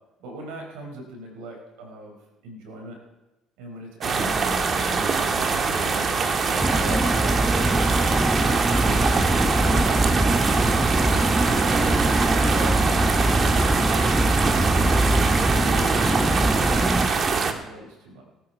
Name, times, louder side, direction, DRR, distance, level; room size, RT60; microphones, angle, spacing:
voice 1, 0.2-2.2 2.4-3.0 3.6-5.9 6.4-11.1 11.5-12.9 13.7-14.0 14.6-18.2, right 1 dB, 85° right, 1 dB, 4.3 m, -40 dB
sound 1, 4.0-17.5, right 4 dB, 45° right, 1.5 m, -23 dB
sound 2, 6.6-17.1, right 1 dB, 10° right, 1.1 m, -23 dB
18.0 x 9.3 x 4.6 m, 1.0 s
supercardioid pair, 80°, 0 cm